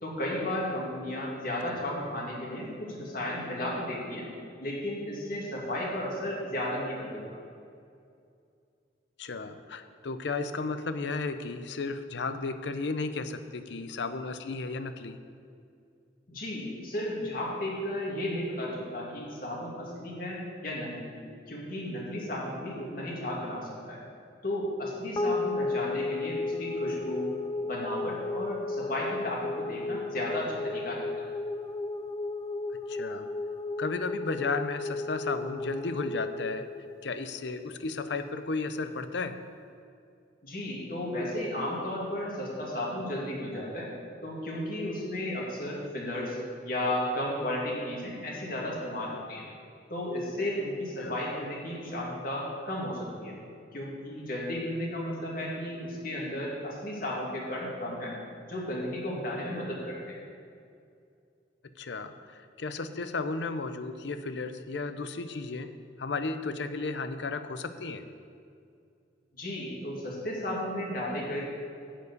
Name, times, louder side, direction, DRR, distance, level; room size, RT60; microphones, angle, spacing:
voice 1, 0.0-4.3 4.6-7.2 16.3-21.1 21.5-24.0 24.4-27.3 27.6-31.2 40.4-43.9 44.2-46.4 46.6-49.5 49.9-53.4 53.7-58.1 58.5-60.2 69.4-71.4, left 1 dB, 50° left, -3 dB, 2.3 m, -34 dB
voice 2, 9.2-15.2 32.9-33.3 33.8-36.7 37.0-39.4 51.0-51.1 61.8-65.7 66.0-68.0, left 3 dB, 70° left, 10 dB, 0.6 m, -34 dB
sound 1, 25.2-37.7, left 3 dB, 20° left, 0.4 m, -34 dB
11.5 x 4.7 x 8.3 m, 2.4 s
head